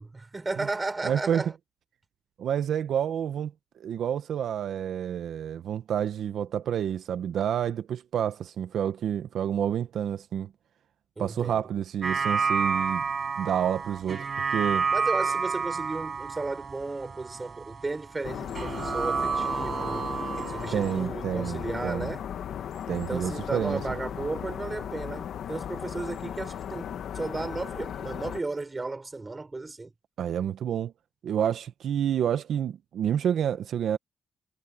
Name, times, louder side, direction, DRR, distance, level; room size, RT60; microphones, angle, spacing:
voice 1, 0.0-1.5 11.2-11.6 14.9-20.1 20.5-22.3 22.9-29.9, right 3 dB, 20° right, 4.8 m, -34 dB
voice 2, 1.0-1.4 2.4-3.5 3.8-10.5 11.2-13.0 13.4-14.9 20.7-22.1 22.9-23.8 30.2-30.9 31.2-34.0, right 9 dB, 80° right, 0.7 m, -29 dB
sound 1, 12.0-18.2 18.5-21.1, right 5 dB, 40° right, 5.6 m, -30 dB
sound 2, 18.2-28.4, left 9 dB, 85° left, 1.3 m, -36 dB
wide cardioid pair, 145°, 0 cm